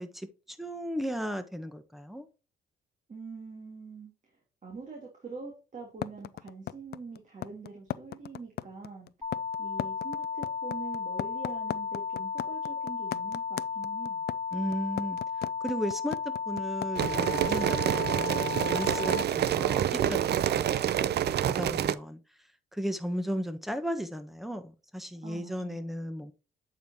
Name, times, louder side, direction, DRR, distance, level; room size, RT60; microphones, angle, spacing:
voice 1, 0.0-2.3 14.5-15.2 15.6-21.2 21.6-22.2 22.7-26.3, equal, ahead, 1.2 m, -35 dB
voice 2, 3.1-4.1 4.6-9.1 9.6-14.2 25.2-25.9, right 4 dB, 40° right, 3.2 m, -44 dB
sound 1, 6.0-17.1, left 11 dB, 55° left, 0.4 m, -36 dB
sound 2, 9.2-19.2, left 5 dB, 15° left, 1.4 m, -34 dB
sound 3, 17.0-22.0, right 10 dB, 55° right, 0.6 m, -27 dB
8.6 x 5.7 x 2.8 m
cardioid pair, 90°, 20 cm